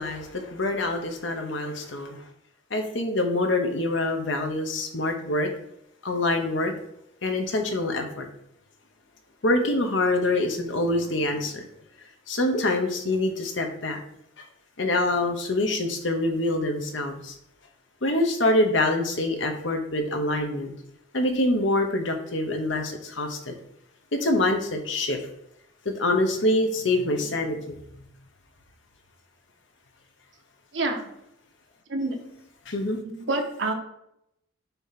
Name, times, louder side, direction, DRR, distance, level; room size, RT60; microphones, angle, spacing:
voice 1, 0.0-2.2 2.7-5.5 6.0-6.7 7.2-8.3 9.4-11.6 12.3-14.0 14.8-17.3 18.0-20.7 21.1-23.5 24.1-25.2 25.8-28.0 32.7-33.0, left 2 dB, 75° left, 4 dB, 1.0 m, -25 dB
voice 2, 30.7-31.1 31.9-32.2 33.0-33.7, right 2 dB, 70° right, 2 dB, 1.2 m, -27 dB
6.9 x 3.0 x 5.8 m, 0.80 s
head